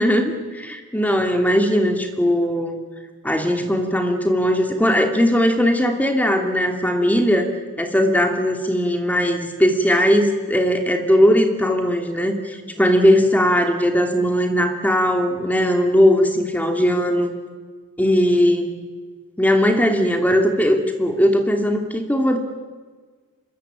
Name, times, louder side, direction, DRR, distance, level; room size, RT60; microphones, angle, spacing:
voice 1, 0.0-2.7 3.2-7.5 7.8-17.3 18.0-18.7 19.4-22.4, equal, 5° left, 4 dB, 2.8 m, -19 dB
26.0 x 22.0 x 9.0 m, 1.4 s
head